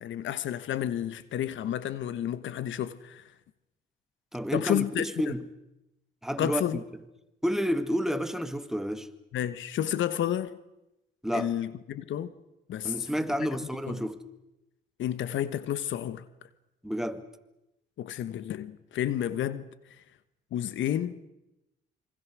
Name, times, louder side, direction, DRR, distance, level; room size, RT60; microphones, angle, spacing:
voice 1, 0.0-3.3 4.5-5.3 6.4-6.8 9.3-10.6 11.3-12.3 12.7-13.1 13.9-14.0 15.0-16.2 18.0-19.7 20.0-20.1 20.5-21.2, left 11 dB, 70° left, 1.2 m, -31 dB
voice 2, 4.3-5.5 6.2-6.8 7.4-9.1 11.2-11.5 12.8-14.2 16.8-17.2, equal, ahead, 2.1 m, -30 dB
27.0 x 24.5 x 6.2 m
supercardioid pair, 70°, 20 cm